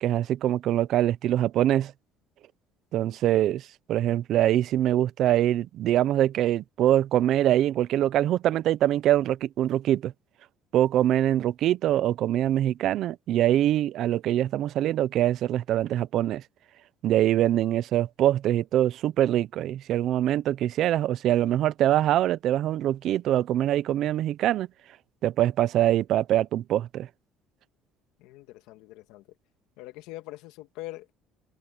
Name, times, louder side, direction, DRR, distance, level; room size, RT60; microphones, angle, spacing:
voice 1, 0.0-1.9 2.9-10.1 10.7-16.4 17.0-24.7 25.2-27.1, right 12 dB, 50° right, 0.6 m, -24 dB
voice 2, 28.2-29.2 29.8-31.1, left 18 dB, 85° left, 2.0 m, -42 dB
cardioid pair, 165°, 0 cm